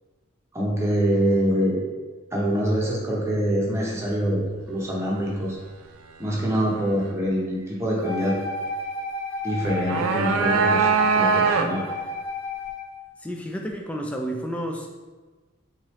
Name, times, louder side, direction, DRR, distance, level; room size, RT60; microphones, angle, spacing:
voice 1, 0.5-1.8 2.3-5.6 6.2-8.4 9.4-11.8, equal, 15° right, -4 dB, 0.7 m, -25 dB
Wind instrument woodwind instrument, 8.0-12.9, left 3 dB, 85° left, 1.1 m, -32 dB
sound 1, 9.6-12.0, right 5 dB, 85° right, 0.3 m, -22 dB
voice 2, 13.2-14.9, equal, 5° left, 1 dB, 0.3 m, -31 dB
3.6 x 3.1 x 3.0 m, 1.3 s
head